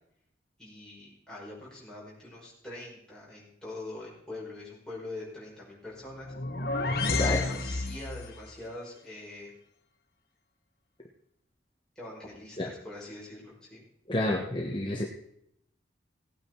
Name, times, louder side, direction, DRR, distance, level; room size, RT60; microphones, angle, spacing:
voice 1, 0.6-6.3 7.0-9.5 12.0-13.8, left 2 dB, 5° left, -6 dB, 5.4 m, -44 dB
sound 1, 6.1-8.4, left 3 dB, 55° left, 1.1 m, -30 dB
voice 2, 14.1-15.1, left 1 dB, 25° left, 0 dB, 1.2 m, -29 dB
17.5 x 8.8 x 4.6 m, 0.76 s
head